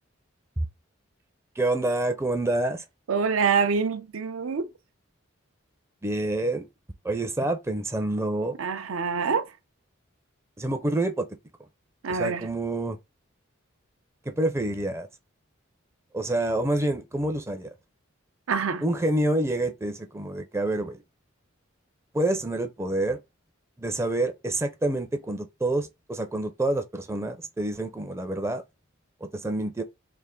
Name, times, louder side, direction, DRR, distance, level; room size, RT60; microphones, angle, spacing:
voice 1, 1.6-2.8 6.0-6.7 7.0-8.6 10.6-11.3 12.1-13.0 14.3-15.1 16.1-17.7 18.8-21.0 22.1-23.2 23.8-28.6 29.2-29.8, right 1 dB, 15° right, 0.4 m, -27 dB
voice 2, 3.1-4.7 8.6-9.5 12.0-12.5 18.5-18.8, right 5 dB, 80° right, 0.5 m, -25 dB
3.3 x 2.5 x 3.6 m
head